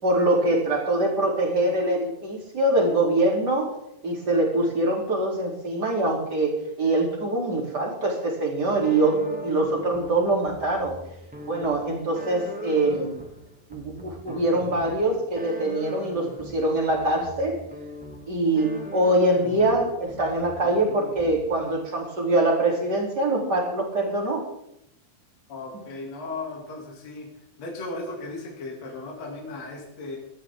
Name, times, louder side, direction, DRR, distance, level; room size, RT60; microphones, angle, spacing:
voice 1, 0.0-3.8 4.0-11.0 11.5-13.2 13.7-17.6 18.3-24.4, right 2 dB, 30° right, -1 dB, 3.7 m, -24 dB
sound 1, 8.8-21.7, equal, 5° right, 1.4 m, -41 dB
voice 2, 25.5-27.3 27.6-30.2, left 3 dB, 45° left, -2 dB, 3.7 m, -36 dB
18.5 x 13.0 x 3.8 m, 0.81 s
omnidirectional pair, 4.3 m